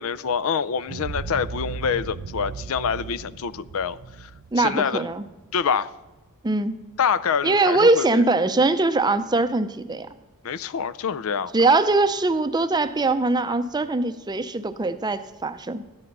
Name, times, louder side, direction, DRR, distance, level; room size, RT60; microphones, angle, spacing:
voice 1, 0.0-4.3 4.6-5.1 5.5-5.9 7.0-8.2 10.4-11.5, left 6 dB, 70° left, 17 dB, 0.5 m, -26 dB
sound 1, 0.9-5.6, right 5 dB, 80° right, 0.5 m, -36 dB
voice 2, 4.5-5.2 6.4-6.7 7.4-10.1 11.5-15.8, right 3 dB, 20° right, 11 dB, 0.5 m, -22 dB
14.0 x 10.0 x 5.3 m, 1.1 s
head